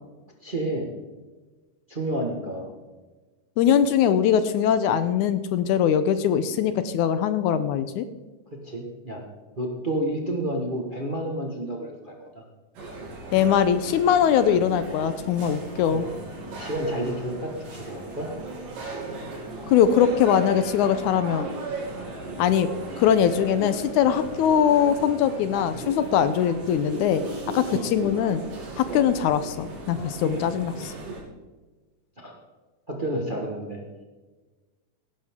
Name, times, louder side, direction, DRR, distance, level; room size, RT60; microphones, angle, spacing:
voice 1, 0.4-0.9 1.9-2.7 8.5-9.2 9.5-12.4 13.2-13.3 15.9-16.1 16.6-18.3 27.7-27.9 32.2-32.4 32.9-33.8, right 1 dB, 65° right, 0 dB, 0.5 m, -30 dB
voice 2, 3.6-8.1 13.3-16.1 19.7-21.5 22.4-22.7 23.0-27.2 27.5-28.4 28.8-30.9, left 8 dB, 80° left, 12 dB, 2.0 m, -21 dB
sound 1, 12.8-31.2, right 2 dB, 85° right, 4.6 m, -36 dB
16.5 x 12.0 x 3.7 m, 1.2 s
omnidirectional pair, 3.7 m